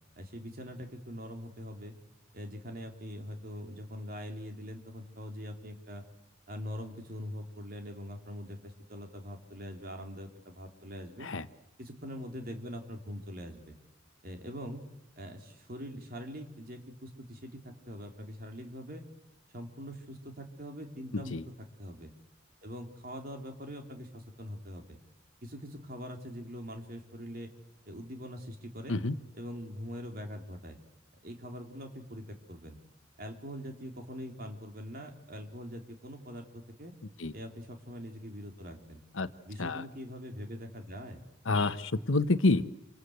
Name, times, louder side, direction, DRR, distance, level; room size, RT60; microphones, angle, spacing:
voice 1, 0.2-2.0 2.3-6.0 6.5-11.3 11.8-13.8 14.2-14.8 15.2-19.0 19.5-21.4 21.8-22.1 22.6-25.0 25.4-27.5 27.9-29.0 29.3-30.8 31.2-32.8 33.2-36.9 37.3-39.0 39.5-41.2, equal, 50° right, 3 dB, 3.6 m, -43 dB
voice 2, 21.1-21.4 28.9-29.1 37.2-37.3 39.1-39.3 39.6-39.8 41.4-42.6, left 2 dB, 85° left, 12 dB, 1.1 m, -28 dB
28.0 x 26.0 x 8.1 m, 0.89 s
head